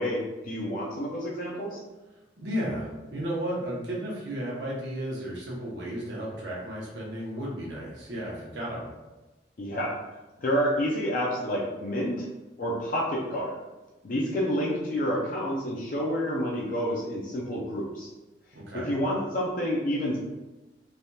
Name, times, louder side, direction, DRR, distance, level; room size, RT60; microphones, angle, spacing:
voice 1, 0.0-1.8 9.6-10.0 10.4-12.3 12.6-13.6 14.0-18.1 18.7-20.2, equal, 45° left, -4 dB, 0.4 m, -29 dB
voice 2, 2.4-8.9 18.5-18.9, equal, 75° right, -4 dB, 0.9 m, -33 dB
3.3 x 2.7 x 2.3 m, 1.1 s
head